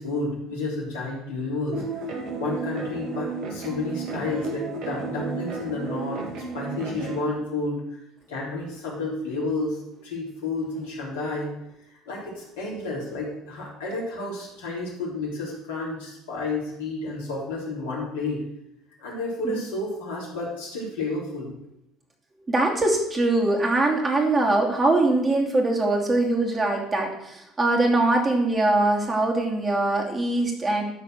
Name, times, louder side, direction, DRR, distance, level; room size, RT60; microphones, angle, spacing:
voice 1, 0.0-2.0 2.4-6.2 6.5-7.8 8.3-11.5 12.1-18.4 19.0-21.5, left 2 dB, 80° left, -4 dB, 3.7 m, -31 dB
sound 1, 1.7-7.2, right 4 dB, 60° right, 1.9 m, -33 dB
voice 2, 22.5-30.8, right 2 dB, 25° right, 0 dB, 2.8 m, -22 dB
12.0 x 4.3 x 6.4 m, 0.85 s
hypercardioid pair, 65°, 0 cm